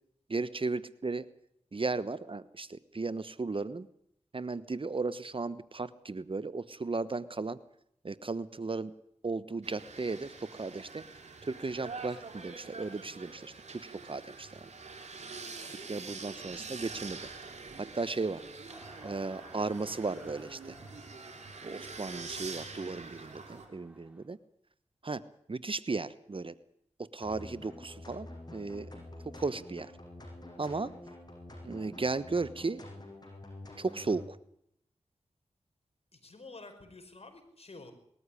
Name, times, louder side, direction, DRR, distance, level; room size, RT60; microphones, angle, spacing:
voice 1, 0.3-1.3 1.7-3.9 4.3-7.6 8.0-8.9 9.2-11.0 11.5-14.7 15.7-17.3 17.8-18.4 19.0-20.8 21.6-24.4 25.0-25.2 25.5-26.5 27.0-28.9 29.2-29.9 30.6-30.9 31.6-32.8 33.8-34.4, right 3 dB, 50° right, 15 dB, 1.1 m, -35 dB
sound 1, 9.6-23.7, right 4 dB, 80° right, 3.9 m, -45 dB
voice 2, 15.6-16.3 36.1-37.9, left 3 dB, 60° left, 7 dB, 5.1 m, -51 dB
sound 2, 18.7-24.3, equal, 10° right, 6.1 m, -57 dB
sound 3, 27.2-34.3, left 1 dB, 35° left, 7.5 m, -48 dB
20.5 x 13.5 x 9.9 m, 0.72 s
cardioid pair, 40°, 12 cm